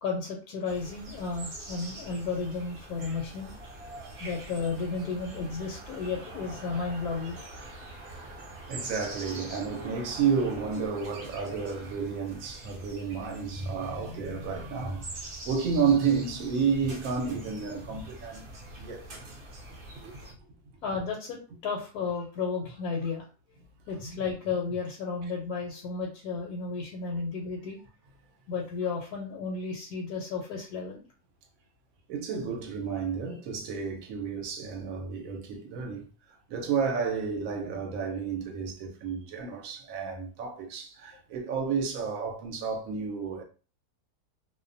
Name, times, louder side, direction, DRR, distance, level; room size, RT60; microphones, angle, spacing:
voice 1, 0.0-3.5 4.2-7.4 20.8-23.2 23.9-27.8 28.5-31.0, left 4 dB, 80° left, 1.1 m, -33 dB
sound 1, 0.7-20.3, right 2 dB, 50° right, 0.7 m, -44 dB
voice 2, 3.8-4.2 7.6-7.9 8.7-18.5 18.8-19.1 19.9-20.5 32.1-36.1 36.5-43.4, right 6 dB, 70° right, 1.0 m, -31 dB
2.6 x 2.1 x 2.5 m
omnidirectional pair, 1.6 m